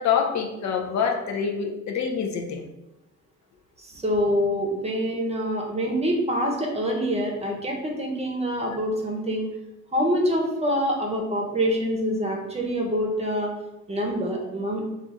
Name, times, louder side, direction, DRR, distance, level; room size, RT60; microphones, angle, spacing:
voice 1, 0.0-2.6, left 6 dB, 65° left, 2 dB, 0.6 m, -26 dB
voice 2, 3.8-9.5 9.9-13.5 13.9-14.8, equal, 20° right, 0 dB, 0.8 m, -25 dB
2.5 x 2.3 x 4.0 m, 0.94 s
cardioid pair, 90°, 30 cm